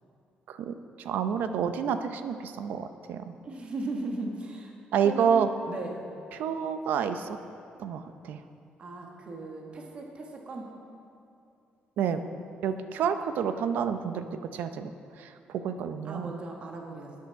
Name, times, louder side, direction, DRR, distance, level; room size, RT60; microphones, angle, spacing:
voice 1, 1.0-3.3 4.9-5.5 6.3-7.4 7.8-8.4 12.0-12.2 12.6-14.3 14.5-14.9 15.2-16.3, right 7 dB, 80° right, 9 dB, 0.6 m, -29 dB
voice 2, 3.4-4.7 5.0-5.4 5.6-6.0 8.8-10.7 16.0-17.2, right 2 dB, 40° right, 0 dB, 1.3 m, -37 dB
13.0 x 9.5 x 4.6 m, 2.6 s
cardioid pair, 145°, 3 cm